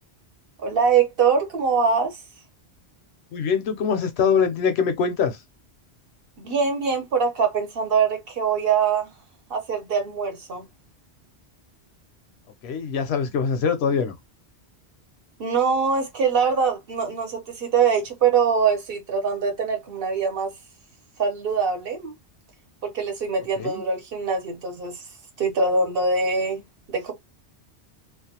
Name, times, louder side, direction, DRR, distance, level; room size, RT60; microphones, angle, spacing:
voice 1, 0.6-2.2 6.4-9.1 9.5-10.7 15.4-20.5 21.2-22.1 22.8-25.0 25.4-27.1, right 5 dB, 60° right, 0.9 m, -23 dB
voice 2, 3.3-5.4 12.6-14.1 23.6-23.8, left 6 dB, 75° left, 0.8 m, -23 dB
2.4 x 2.2 x 2.7 m
omnidirectional pair, 1.1 m